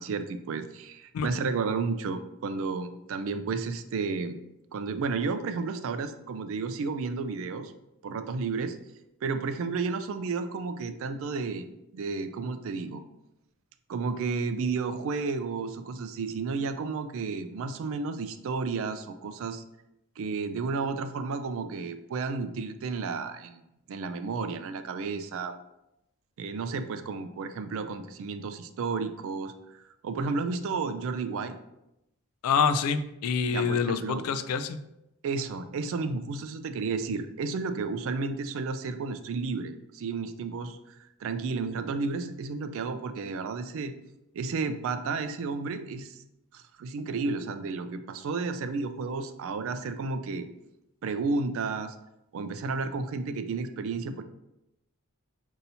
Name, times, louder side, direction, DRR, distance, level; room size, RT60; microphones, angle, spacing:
voice 1, 0.0-4.4 4.7-7.7 8.0-8.8 9.2-11.7 11.9-13.0 13.9-19.6 20.2-25.6 26.4-31.6 33.5-34.2 35.2-43.9 44.3-46.2 46.5-50.5 51.0-52.0 52.3-54.2, right 4 dB, 65° right, 9 dB, 0.3 m, -32 dB
voice 2, 32.4-34.8, left 6 dB, 85° left, 11 dB, 0.3 m, -26 dB
5.4 x 2.7 x 2.6 m, 0.87 s
head